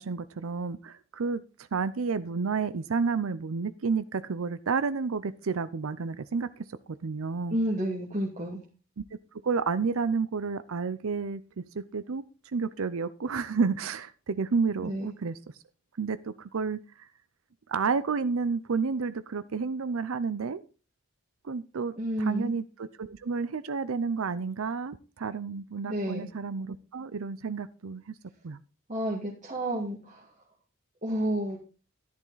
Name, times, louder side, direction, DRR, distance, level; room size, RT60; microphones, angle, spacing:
voice 1, 0.0-1.4 1.7-6.6 7.0-7.6 9.0-9.1 9.4-11.4 11.7-12.2 12.5-15.4 16.0-17.1 17.7-20.6 21.4-28.1 28.4-28.6, right 5 dB, 80° right, 0.6 m, -30 dB
voice 2, 7.5-8.6 14.8-15.1 22.0-22.5 25.9-26.3 28.9-30.3 31.0-31.6, right 1 dB, 35° right, 1.8 m, -30 dB
11.0 x 10.5 x 3.9 m
head